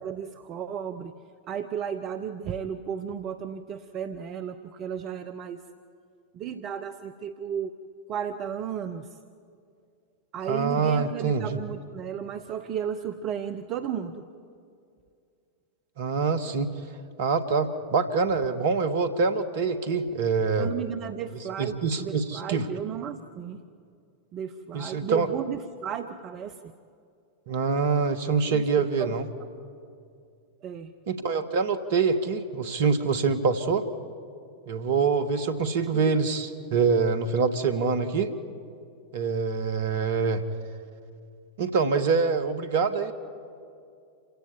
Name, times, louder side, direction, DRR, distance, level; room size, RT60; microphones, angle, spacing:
voice 1, 0.0-1.1 1.5-5.6 6.3-7.8 8.1-9.2 10.3-14.2 20.6-23.6 24.3-26.7 28.5-29.2 30.6-30.9 35.9-36.2, right 8 dB, 35° right, 9 dB, 0.8 m, -34 dB
voice 2, 10.5-11.6 16.0-16.7 17.2-20.7 21.6-22.7 24.7-25.3 27.5-29.3 31.1-33.9 34.7-38.3 39.1-40.4 41.6-43.1, right 5 dB, 55° right, 10 dB, 1.6 m, -25 dB
27.5 x 17.0 x 8.3 m, 2.4 s
figure-of-eight pair, 90°, 0 cm